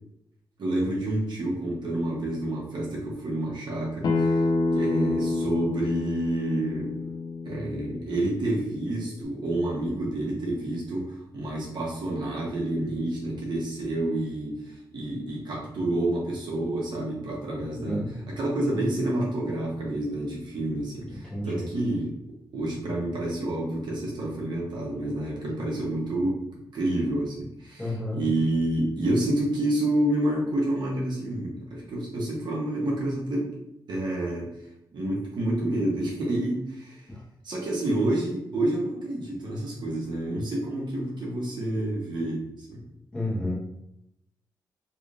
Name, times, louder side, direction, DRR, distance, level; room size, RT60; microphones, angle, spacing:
voice 1, 0.6-4.4 4.7-6.9 7.4-22.1 22.5-26.4 26.7-33.5 33.9-34.5 34.9-37.1 37.4-42.8, right 1 dB, 65° right, -4 dB, 1.1 m, -29 dB
Acoustic guitar, 4.0-9.2, left 2 dB, 60° left, 0.5 m, -28 dB
voice 2, 17.6-18.4 21.2-21.6 27.8-28.2 37.1-37.2 43.1-43.6, left 1 dB, 15° left, -7 dB, 1.2 m, -31 dB
3.2 x 3.2 x 2.6 m, 0.81 s
wide cardioid pair, 140°, 8 cm